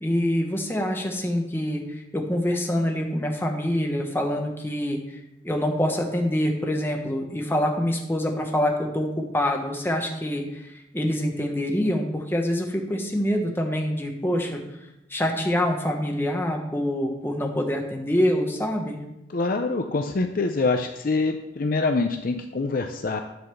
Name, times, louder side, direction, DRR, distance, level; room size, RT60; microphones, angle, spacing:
voice 1, 0.0-5.0 5.4-14.6 15.1-19.0, equal, 10° left, 2 dB, 1.1 m, -25 dB
voice 2, 19.3-23.2, left 3 dB, 45° left, 5 dB, 0.5 m, -25 dB
10.5 x 4.1 x 6.8 m, 0.88 s
head